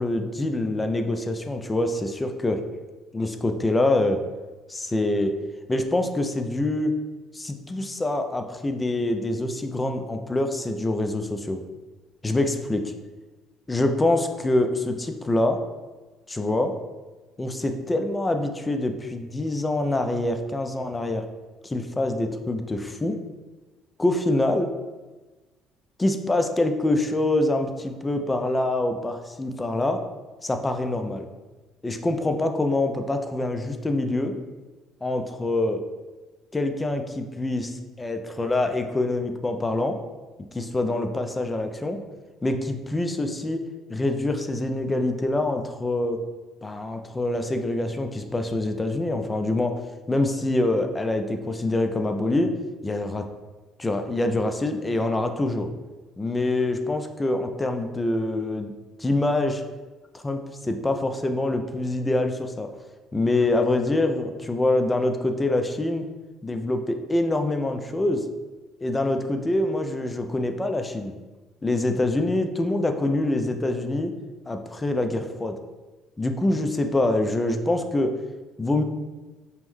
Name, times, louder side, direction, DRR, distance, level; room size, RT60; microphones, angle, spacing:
voice 1, 0.0-2.6 3.1-4.2 4.7-5.3 5.7-6.9 7.3-11.6 12.2-12.9 13.7-15.6 16.3-16.7 17.4-21.2 21.6-23.2 24.0-24.7 26.0-30.0 30.4-31.3 31.8-34.3 35.0-35.8 36.5-40.0 40.5-42.0 42.4-43.6 43.9-46.2 46.6-49.8 50.1-52.5 52.8-53.3 53.8-55.7 56.2-58.7 59.0-59.6 60.1-62.7 63.1-66.0 66.4-68.2 68.8-71.1 71.6-74.1 74.5-75.6 76.2-78.1 78.6-78.8, left 2 dB, 15° left, 6 dB, 0.3 m, -25 dB
5.5 x 2.1 x 3.1 m, 1.2 s
cardioid pair, 120°, 0 cm